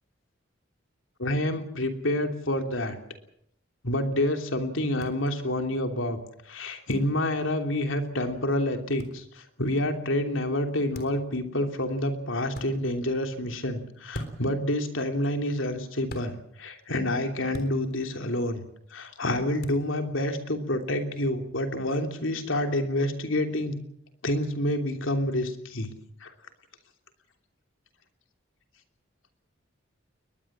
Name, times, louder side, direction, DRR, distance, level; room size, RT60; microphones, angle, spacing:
voice 1, 1.2-3.0 3.8-6.2 6.5-18.6 18.9-23.8 24.2-25.9 26.2-26.3, left 1 dB, 75° left, 5 dB, 3.1 m, -28 dB
sound 1, 5.0-5.1 6.9-7.1 9.0-9.2 10.9-11.3 12.5-12.7 14.1-14.5 16.1-16.3 17.5-17.8 19.6-19.8, equal, 45° left, 3.6 m, -38 dB
22.0 x 20.5 x 7.4 m, 0.71 s
head